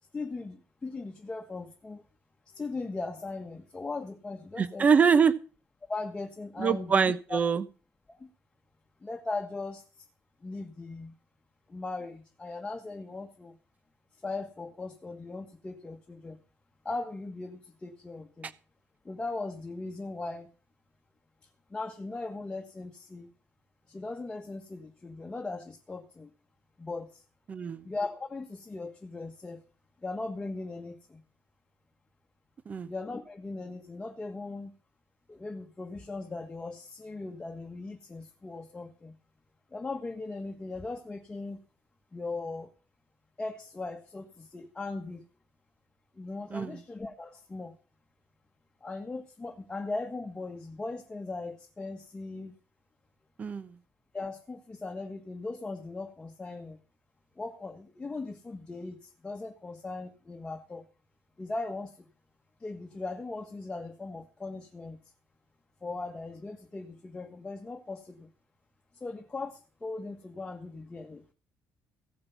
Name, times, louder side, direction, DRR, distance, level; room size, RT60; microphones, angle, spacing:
voice 1, 0.1-2.0 2.5-4.9 5.9-7.4 8.1-8.3 9.0-10.1 10.4-11.2 11.7-13.6 14.2-16.4 16.8-18.5 19.0-20.5 21.7-23.3 23.9-26.3 26.8-27.2 27.8-29.6 30.0-31.2 32.9-34.7 35.3-39.2 39.7-41.6 42.1-42.7 43.4-45.3 46.2-47.8 48.8-52.5 54.1-56.8 57.4-60.9 61.4-62.1 62.6-65.0 65.8-68.3 68.9-71.2, left 3 dB, 15° left, 4 dB, 1.5 m, -38 dB
voice 2, 4.6-5.3 6.6-7.6 27.5-27.8 32.7-32.9 46.5-46.8 53.4-53.7, right 6 dB, 30° right, 14 dB, 1.0 m, -24 dB
16.0 x 8.7 x 5.7 m, 0.37 s
cardioid pair, 155°, 5 cm